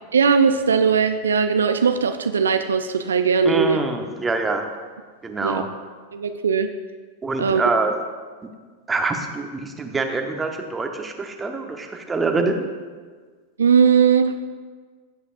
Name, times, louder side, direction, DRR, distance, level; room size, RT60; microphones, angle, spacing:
voice 1, 0.1-3.8 5.4-5.6 6.1-6.7 7.4-7.6 13.6-14.3, right 6 dB, 70° right, 8 dB, 0.5 m, -19 dB
voice 2, 3.4-4.7 5.2-5.7 7.2-7.9 8.9-12.7, right 3 dB, 15° right, 4 dB, 1.1 m, -25 dB
16.5 x 8.1 x 2.6 m, 1.5 s
figure-of-eight pair, 90°, 0 cm